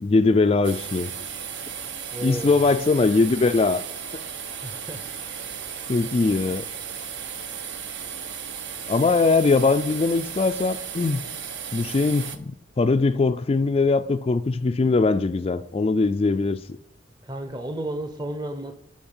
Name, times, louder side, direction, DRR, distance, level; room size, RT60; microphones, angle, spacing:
voice 1, 0.0-1.1 2.2-3.8 4.1-4.2 5.9-6.6 8.9-11.2 11.7-16.6, left 3 dB, 30° left, 0.3 m, -21 dB
sound 1, 0.6-12.4, right 7 dB, 65° right, 0.8 m, -35 dB
voice 2, 2.1-2.6 4.6-5.1 17.2-18.7, right 1 dB, 20° right, 0.8 m, -33 dB
12.0 x 5.3 x 5.5 m
head